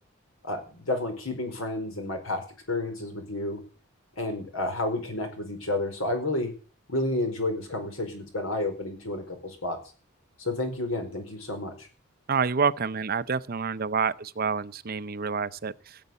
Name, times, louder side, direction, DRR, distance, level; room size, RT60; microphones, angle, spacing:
voice 1, 0.4-2.4 2.7-3.6 4.2-6.5 6.9-9.8 10.4-11.9, left 2 dB, 80° left, 4.7 m, -30 dB
voice 2, 12.3-16.0, right 5 dB, 45° right, 0.6 m, -28 dB
17.0 x 8.1 x 8.2 m
head